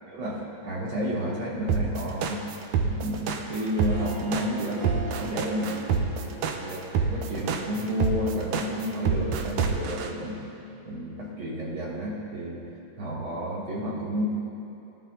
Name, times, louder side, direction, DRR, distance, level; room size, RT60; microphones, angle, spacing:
voice 1, 0.1-2.5 2.8-10.4 10.8-12.6 13.0-14.2, equal, 45° right, -7 dB, 3.3 m, -31 dB
sound 1, 1.7-10.1, right 6 dB, 75° right, 2.0 m, -26 dB
Harp, 3.2-8.4, right 3 dB, 60° right, 1.0 m, -42 dB
19.5 x 11.5 x 2.8 m, 2.9 s
omnidirectional pair, 3.3 m